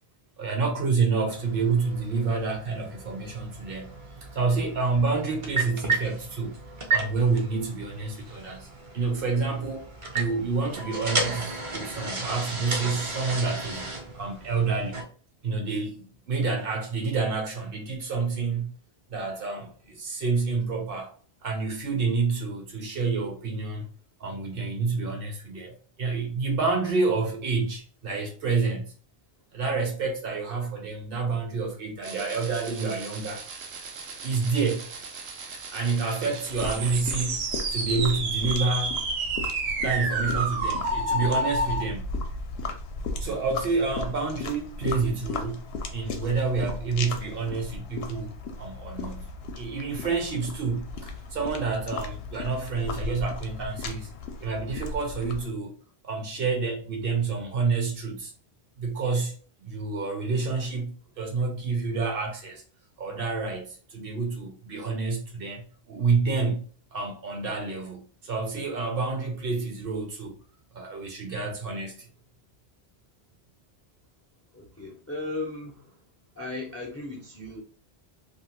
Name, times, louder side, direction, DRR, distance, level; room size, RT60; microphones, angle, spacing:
voice 1, 0.4-4.0 4.3-6.6 6.9-8.7 8.9-9.8 10.1-15.1 15.4-18.7 19.1-21.2 21.4-23.9 24.2-28.9 29.5-33.4 34.2-34.9 35.7-37.4 37.7-39.0 39.8-42.1 43.2-45.6 45.9-48.3 48.6-54.1 54.4-55.7 56.0-58.3 58.8-59.3 59.6-62.6 63.0-66.6 66.9-70.3 70.7-72.1, right 4 dB, 60° right, 0.9 m, -28 dB
sound 1, 1.3-15.0, right 3 dB, 40° right, 0.5 m, -34 dB
sound 2, 32.0-41.8, right 2 dB, 85° right, 0.9 m, -31 dB
sound 3, 36.5-55.5, left 3 dB, 70° left, 0.8 m, -36 dB
voice 2, 74.5-76.0 76.3-77.6, left 2 dB, 20° left, 0.4 m, -36 dB
2.8 x 2.1 x 2.8 m
omnidirectional pair, 1.1 m